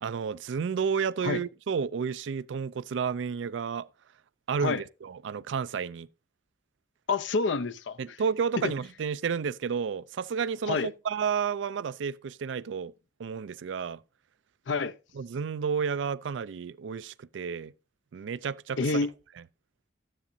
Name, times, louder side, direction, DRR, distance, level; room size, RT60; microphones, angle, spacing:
voice 1, 0.0-3.9 4.5-6.1 8.0-12.9 13.2-14.0 15.1-17.7 18.1-18.8, right 6 dB, 85° right, 0.4 m, -31 dB
voice 2, 7.1-8.0 8.6-8.7 10.7-10.9 14.7-14.9 18.8-19.1, left 4 dB, 85° left, 0.6 m, -27 dB
12.5 x 9.9 x 2.6 m
head